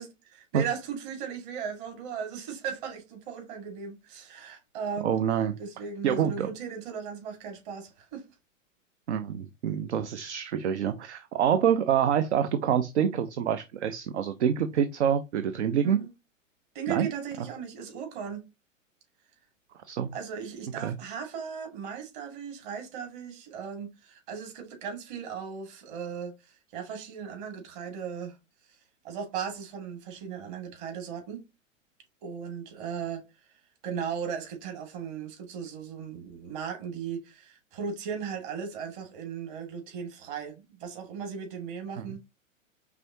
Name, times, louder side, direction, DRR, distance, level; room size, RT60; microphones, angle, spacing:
voice 1, 0.0-5.2 5.6-8.2 15.8-16.1 16.7-18.5 20.1-28.4 29.0-31.4 32.2-33.2 33.8-42.2, right 7 dB, 40° right, 2.2 m, -37 dB
voice 2, 5.0-5.6 6.0-6.5 9.1-16.0 16.9-17.1 19.8-20.1 20.8-21.0 42.0-42.2, right 8 dB, 60° right, 0.6 m, -26 dB
5.1 x 3.5 x 2.8 m
figure-of-eight pair, 105°, 39 cm